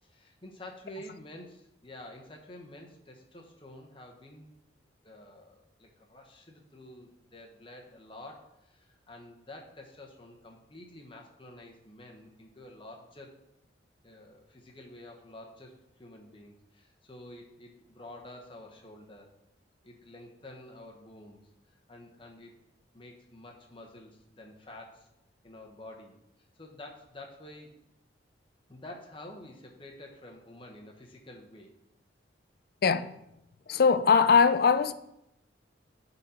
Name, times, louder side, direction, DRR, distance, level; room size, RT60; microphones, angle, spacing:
voice 1, 0.0-4.5 5.0-13.4 14.0-19.3 19.8-21.4 21.7-22.5 22.9-25.1 25.4-26.2 26.6-27.8 28.7-31.8, left 1 dB, 25° left, 1.1 m, -49 dB
voice 2, 32.8-33.1 33.7-34.9, left 5 dB, 50° left, 0.4 m, -21 dB
11.0 x 4.1 x 4.4 m
head